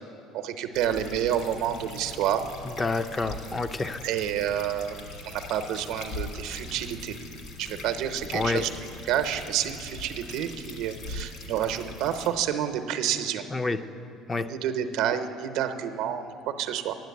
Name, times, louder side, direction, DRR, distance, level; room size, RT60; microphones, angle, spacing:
voice 1, 0.3-2.4 4.0-5.0 5.2-7.1 7.6-8.7 9.1-13.4 14.4-17.0, right 10 dB, 75° right, 8 dB, 0.7 m, -29 dB
sound 1, 0.7-12.3, left 2 dB, 60° left, 1.8 m, -41 dB
voice 2, 2.8-4.0 8.3-8.7 13.5-13.8 14.3-14.5, left 3 dB, 20° left, 10 dB, 0.4 m, -28 dB
9.1 x 7.7 x 9.2 m, 2.6 s
cardioid pair, 130°, 0 cm